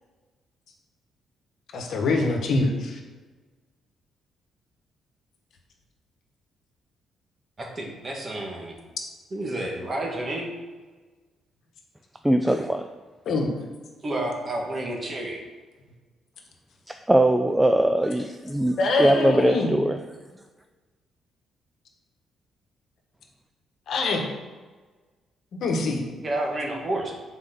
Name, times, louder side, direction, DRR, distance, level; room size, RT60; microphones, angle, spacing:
voice 1, 1.7-3.0 13.2-13.5 18.8-19.8 23.9-24.3 25.5-26.0, left 2 dB, 65° left, 2 dB, 1.3 m, -24 dB
voice 2, 7.6-8.8 9.3-10.5 14.0-15.4 26.2-27.1, right 1 dB, 35° right, 0 dB, 1.7 m, -30 dB
voice 3, 12.2-12.9 16.9-20.0, right 1 dB, 10° right, 6 dB, 0.4 m, -21 dB
6.2 x 4.6 x 5.8 m, 1.3 s
cardioid pair, 90°, 0 cm